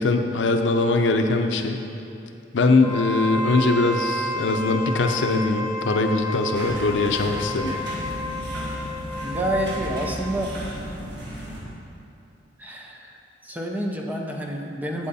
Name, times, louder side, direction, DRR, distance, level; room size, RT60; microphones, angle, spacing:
voice 1, 0.0-1.8 2.5-7.7, left 3 dB, 80° left, 5 dB, 0.6 m, -21 dB
Wind instrument woodwind instrument, 2.8-10.2, left 1 dB, 15° left, 0.9 m, -31 dB
sound 1, 6.5-11.6, right 1 dB, 65° right, 1.7 m, -34 dB
voice 2, 9.2-10.5 12.6-13.2 13.4-15.1, equal, 10° right, 0 dB, 0.7 m, -28 dB
8.3 x 7.7 x 4.2 m, 2.7 s
head